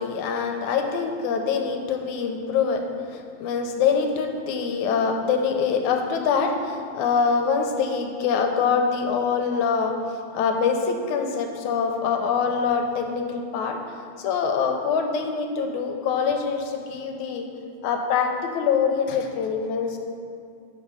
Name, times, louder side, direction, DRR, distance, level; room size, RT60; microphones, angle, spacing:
voice 1, 0.0-2.8 3.1-9.9 10.3-13.8 14.2-17.5 17.8-20.0, left 6 dB, 90° left, 4 dB, 2.0 m, -24 dB
7.1 x 4.9 x 5.5 m, 2.4 s
omnidirectional pair, 3.3 m